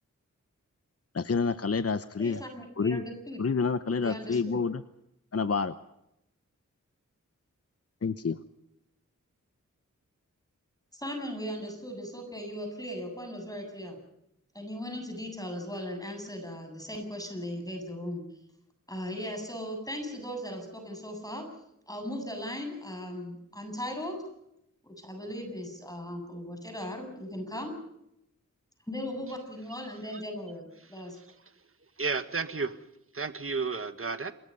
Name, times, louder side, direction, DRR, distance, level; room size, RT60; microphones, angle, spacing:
voice 1, 1.1-2.4 2.8-3.0 3.4-4.8 5.3-5.7 8.0-8.4, left 5 dB, 50° left, 12 dB, 0.9 m, -28 dB
voice 2, 2.2-3.4 4.0-4.6 10.9-14.0 14.5-18.3 18.9-21.5 21.9-24.2 24.8-27.8 28.9-31.2, equal, 10° left, 5 dB, 7.7 m, -38 dB
voice 3, 32.0-32.8 33.1-34.3, right 4 dB, 45° right, 10 dB, 1.6 m, -32 dB
27.5 x 22.0 x 5.5 m, 0.82 s
wide cardioid pair, 60°, 31 cm